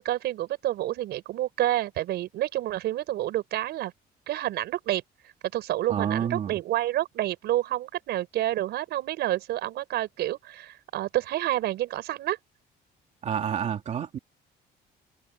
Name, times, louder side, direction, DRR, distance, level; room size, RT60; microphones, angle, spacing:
voice 1, 0.0-3.9 4.3-5.0 5.5-12.4, right 14 dB, 70° right, 5.4 m, -29 dB
voice 2, 5.9-6.6 13.2-14.2, right 8 dB, 40° right, 2.9 m, -29 dB
cardioid pair, 170°, 18 cm